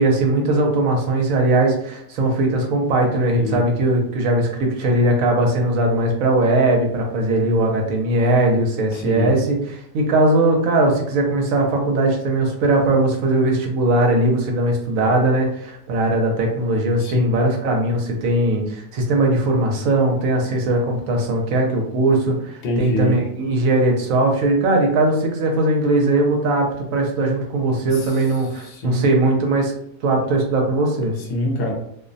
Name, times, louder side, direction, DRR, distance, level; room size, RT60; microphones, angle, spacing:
voice 1, 0.0-29.7 30.0-31.2, right 2 dB, 75° right, 1 dB, 1.0 m, -19 dB
voice 2, 8.9-9.4 17.0-17.5 22.6-23.2 27.9-28.2 28.6-29.1 31.2-31.7, left 1 dB, 60° left, 0 dB, 0.5 m, -25 dB
2.5 x 2.1 x 2.5 m, 0.71 s
omnidirectional pair, 1.5 m